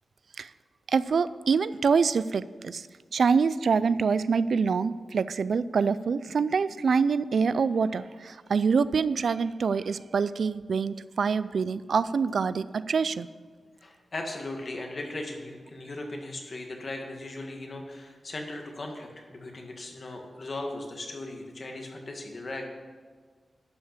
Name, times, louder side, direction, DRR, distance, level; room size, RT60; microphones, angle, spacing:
voice 1, 0.9-2.9 3.1-13.3, right 5 dB, 75° right, 16 dB, 0.3 m, -25 dB
voice 2, 13.8-22.7, left 2 dB, 50° left, 2 dB, 1.8 m, -38 dB
11.5 x 5.6 x 6.6 m, 1.5 s
wide cardioid pair, 105°, 0 cm